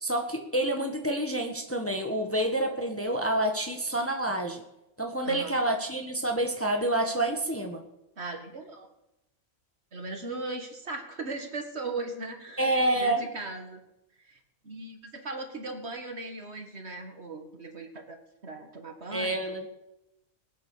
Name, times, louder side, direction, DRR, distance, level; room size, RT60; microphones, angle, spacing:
voice 1, 0.0-4.6 5.0-7.8 12.6-13.3 19.1-19.7, right 1 dB, 10° left, 4 dB, 1.4 m, -28 dB
voice 2, 5.2-5.6 8.2-8.9 9.9-13.8 14.2-18.2 18.4-19.4, right 3 dB, 55° right, 5 dB, 2.1 m, -38 dB
21.0 x 8.7 x 6.7 m, 0.89 s
omnidirectional pair, 1.4 m